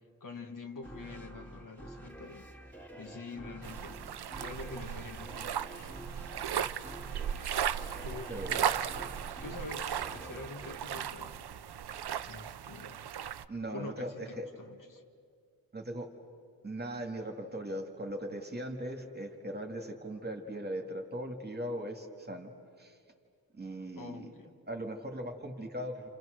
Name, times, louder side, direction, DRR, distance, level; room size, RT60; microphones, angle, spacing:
voice 1, 0.2-2.5 3.0-4.0 4.4-6.0 8.0-8.6 9.4-11.4 12.2-13.0 13.7-15.0 24.0-24.6, left 3 dB, 55° left, 3 dB, 2.3 m, -46 dB
sound 1, 0.8-12.0, right 1 dB, 5° left, 2.7 m, -49 dB
sound 2, 3.6-13.5, right 9 dB, 90° right, 0.7 m, -36 dB
voice 2, 8.3-8.7 13.5-14.5 15.7-16.1 16.6-22.5 22.8-23.0 23.5-24.3 24.7-26.1, right 1 dB, 25° right, 3 dB, 2.1 m, -39 dB
30.0 x 28.5 x 6.6 m, 2.2 s
wide cardioid pair, 155°, 38 cm